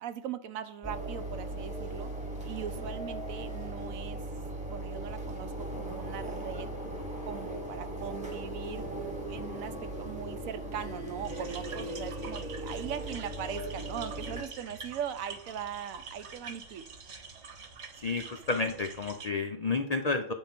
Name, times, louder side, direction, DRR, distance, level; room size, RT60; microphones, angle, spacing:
voice 1, 0.0-2.1 2.4-4.2 4.7-6.7 7.3-8.9 9.3-16.8, right 8 dB, 90° right, 11 dB, 1.1 m, -40 dB
sound 1, 0.8-14.4, right 1 dB, 5° right, 1.1 m, -38 dB
sound 2, 11.2-19.3, right 5 dB, 55° right, 1.2 m, -46 dB
voice 2, 17.9-20.3, left 3 dB, 75° left, 6 dB, 0.3 m, -31 dB
7.9 x 3.6 x 5.8 m, 0.67 s
omnidirectional pair, 1.4 m